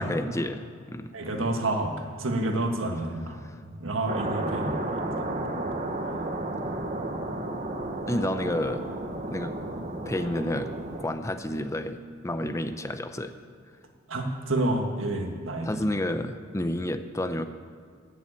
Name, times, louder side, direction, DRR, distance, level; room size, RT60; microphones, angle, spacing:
voice 1, 0.0-1.2 8.1-8.8 9.3-9.5 10.1-10.7 11.0-12.0 12.2-13.3 15.6-17.5, left 1 dB, 15° left, 9 dB, 0.6 m, -30 dB
voice 2, 1.1-1.9 2.2-3.4 3.8-5.3 14.1-15.8, right 1 dB, 80° right, 3 dB, 1.7 m, -29 dB
sound 1, 4.1-11.1, right 2 dB, 35° right, 1.3 m, -32 dB
13.5 x 7.6 x 8.7 m, 2.1 s
head